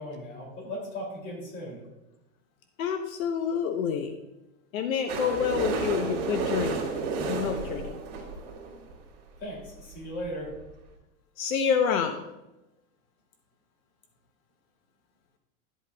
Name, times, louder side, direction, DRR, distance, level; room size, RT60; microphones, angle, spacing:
voice 1, 0.0-1.8 9.4-10.5, equal, 25° left, -1 dB, 2.6 m, -37 dB
voice 2, 2.8-4.1 4.7-6.8 7.3-8.0 11.4-12.2, left 7 dB, 75° left, 5 dB, 0.9 m, -28 dB
sound 1, 5.1-8.9 9.6-9.7 9.9-10.0 10.2-10.3 10.6-10.7, right 4 dB, 30° right, 2.1 m, -31 dB
12.0 x 8.0 x 2.3 m, 0.98 s
supercardioid pair, 175°, 41 cm